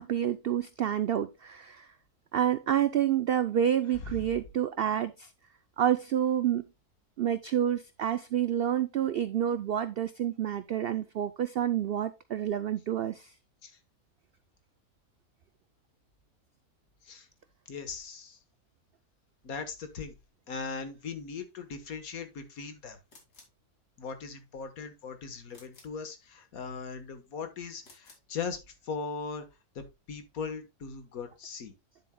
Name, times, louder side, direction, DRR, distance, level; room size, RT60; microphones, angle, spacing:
voice 1, 0.0-1.9 2.3-5.3 5.8-6.7 7.2-13.3, right 10 dB, 85° right, 0.5 m, -28 dB
voice 2, 3.9-4.3 13.6-13.7 17.0-17.3 17.7-18.4 19.4-20.1 20.5-23.0 24.0-29.4 29.7-31.7, left 5 dB, 70° left, 1.7 m, -39 dB
sound 1, 23.1-23.6 25.5-26.0 27.8-28.3, left 3 dB, 90° left, 3.0 m, -57 dB
9.7 x 7.6 x 2.2 m
omnidirectional pair, 1.6 m